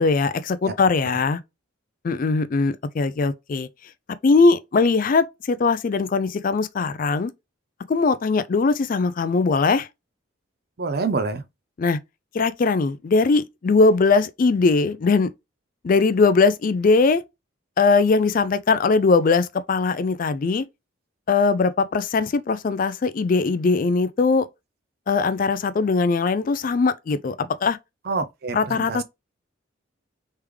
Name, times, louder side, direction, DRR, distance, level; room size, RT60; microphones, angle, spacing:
voice 1, 0.0-1.4 2.0-3.7 4.2-7.3 7.9-9.9 11.8-12.0 12.3-15.3 15.8-17.2 17.8-20.6 21.3-24.5 25.1-27.8 28.5-29.0, left 4 dB, 40° left, 0.3 m, -20 dB
voice 2, 10.8-11.4 28.1-29.0, right 4 dB, 50° right, 0.5 m, -26 dB
3.4 x 3.3 x 3.2 m
head